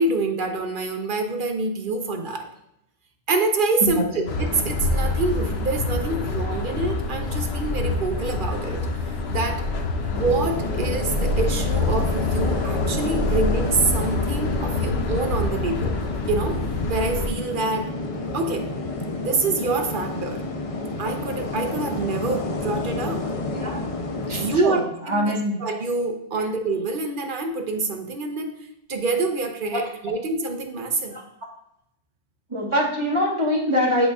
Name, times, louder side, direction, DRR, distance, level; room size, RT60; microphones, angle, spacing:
voice 1, 0.0-2.5 3.3-9.6 10.1-16.0 16.3-16.6 16.9-17.9 18.3-18.7 19.2-20.4 21.0-23.3 24.3-28.6 28.9-31.2, right 3 dB, 50° right, 4 dB, 0.8 m, -26 dB
sound 1, 4.3-17.3, left 3 dB, 65° left, 0.9 m, -26 dB
sound 2, 10.1-24.6, left 2 dB, 40° left, 0.5 m, -30 dB
voice 2, 24.3-24.8 25.1-25.6 29.7-29.9 31.1-31.2 32.5-34.1, equal, 25° right, -4 dB, 1.5 m, -23 dB
9.8 x 4.0 x 2.4 m, 0.80 s
omnidirectional pair, 1.2 m